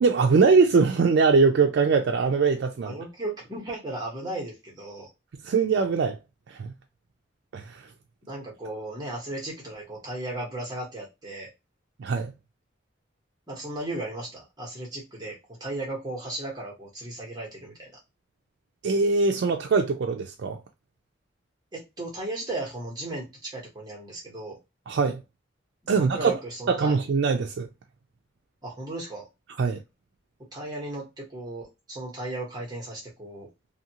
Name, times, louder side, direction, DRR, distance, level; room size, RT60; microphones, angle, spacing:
voice 1, 0.0-2.9 5.4-6.2 6.5-6.7 7.5-7.8 12.0-12.3 18.8-20.6 24.9-25.2 25.9-26.3 26.7-27.7 29.6-29.8, right 4 dB, 65° right, 0.4 m, -22 dB
voice 2, 2.7-5.1 8.2-11.5 13.5-18.0 21.7-24.6 25.8-26.9 28.6-29.3 30.5-33.5, right 2 dB, 20° right, 1.1 m, -36 dB
2.7 x 2.5 x 2.9 m
head